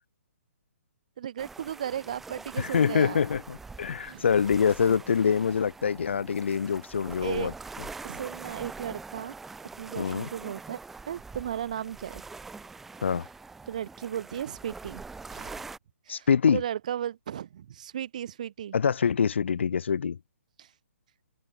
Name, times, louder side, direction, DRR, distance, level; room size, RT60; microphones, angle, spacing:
voice 1, 1.2-3.2 4.0-4.3 7.2-7.5 8.0-9.4 9.8-10.8 11.1-12.2 13.7-15.0 15.3-15.6 16.1-18.8 20.6-20.7, right 10 dB, 30° right, 1.0 m, -35 dB
sound 1, 1.4-15.8, right 4 dB, 5° right, 1.7 m, -44 dB
voice 2, 2.6-7.5 10.0-10.3 13.0-13.2 16.1-16.6 18.7-20.2, left 6 dB, 50° left, 0.8 m, -25 dB
hypercardioid pair, 180°, 8 cm